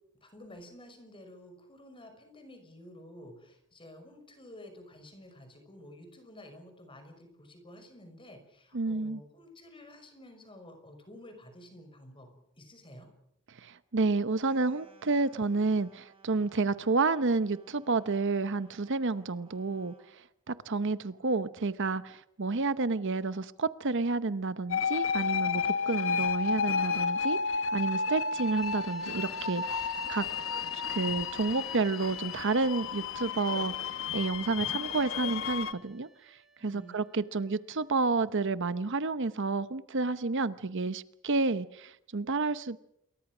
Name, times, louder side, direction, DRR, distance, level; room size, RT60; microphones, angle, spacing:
voice 1, 0.2-12.3 12.6-13.1 36.6-37.0, left 1 dB, 25° left, 7 dB, 5.8 m, -51 dB
voice 2, 8.7-9.2 13.5-30.3 30.7-42.8, right 3 dB, 55° right, 14 dB, 0.8 m, -30 dB
sound 1, 14.3-20.1, right 4 dB, 25° right, 6.2 m, -61 dB
sound 2, 24.7-35.7, left 5 dB, 60° left, 1.3 m, -32 dB
sound 3, 28.4-38.5, right 1 dB, ahead, 2.0 m, -59 dB
28.5 x 23.0 x 6.2 m, 0.77 s
head